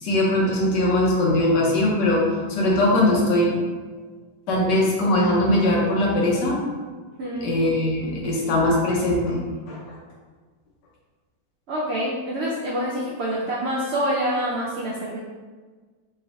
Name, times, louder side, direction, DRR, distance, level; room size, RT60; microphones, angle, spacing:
voice 1, 0.0-3.6 4.5-6.7 7.4-9.8, left 1 dB, 85° left, -3 dB, 1.5 m, -21 dB
voice 2, 7.2-7.5 11.7-15.2, equal, 80° right, -5 dB, 0.5 m, -26 dB
3.4 x 3.0 x 3.5 m, 1.4 s
omnidirectional pair, 1.8 m